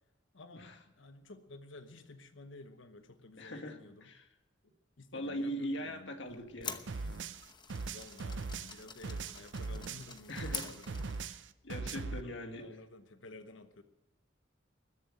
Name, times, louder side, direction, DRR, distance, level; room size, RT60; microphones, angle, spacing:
voice 1, 0.3-4.1 5.0-6.2 7.9-11.1 12.0-12.2 12.5-13.8, left 2 dB, 85° left, 9 dB, 1.0 m, -53 dB
voice 2, 3.4-3.8 5.1-7.1 10.3-10.7 11.6-12.7, equal, 70° left, 5 dB, 1.9 m, -40 dB
sound 1, 6.3-11.4, left 6 dB, 25° left, 0.9 m, -47 dB
sound 2, 6.9-10.1 10.4-12.2, right 4 dB, 70° right, 0.6 m, -40 dB
20.5 x 7.7 x 8.7 m, 1.1 s
head